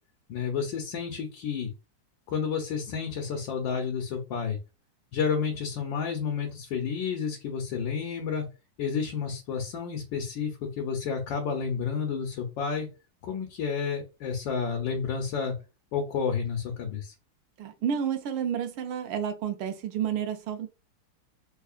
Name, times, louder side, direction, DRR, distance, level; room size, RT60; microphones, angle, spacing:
voice 1, 0.3-1.7 2.3-4.6 5.1-8.5 8.8-12.9 13.2-15.6 15.9-17.1, left 6 dB, 70° left, 1.4 m, -30 dB
voice 2, 17.6-20.7, right 8 dB, 90° right, 1.5 m, -30 dB
3.6 x 3.3 x 2.4 m
omnidirectional pair, 2.3 m